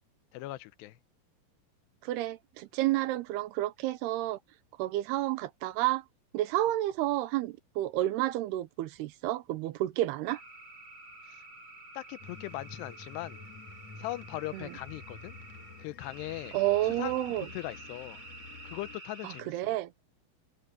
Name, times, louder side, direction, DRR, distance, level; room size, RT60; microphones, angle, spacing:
voice 1, 0.3-1.0 11.3-11.4 12.0-13.4 14.0-15.4 15.8-16.5 17.0-18.2 18.6-19.5, left 17 dB, 85° left, 2.9 m, -40 dB
voice 2, 2.0-4.4 4.8-6.0 6.3-10.4 14.5-14.7 16.5-17.5 19.2-19.9, right 15 dB, 85° right, 2.8 m, -30 dB
sound 1, 10.3-19.4, right 2 dB, 45° right, 7.7 m, -49 dB
sound 2, 12.2-19.0, left 4 dB, 55° left, 2.3 m, -50 dB
omnidirectional pair, 4.7 m